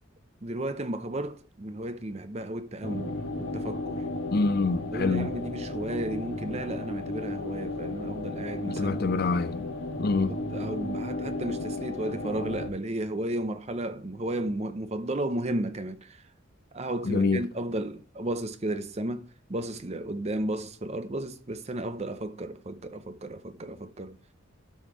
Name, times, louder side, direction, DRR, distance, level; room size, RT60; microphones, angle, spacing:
voice 1, 0.4-4.0 4.9-9.0 10.3-16.2 16.7-24.2, right 1 dB, 30° right, 0.6 m, -33 dB
sound 1, 2.8-12.7, left 2 dB, 65° left, 1.9 m, -34 dB
voice 2, 4.3-5.3 8.6-9.7 10.0-10.3 17.0-17.4, left 3 dB, 45° left, 0.5 m, -26 dB
12.5 x 4.3 x 4.6 m
head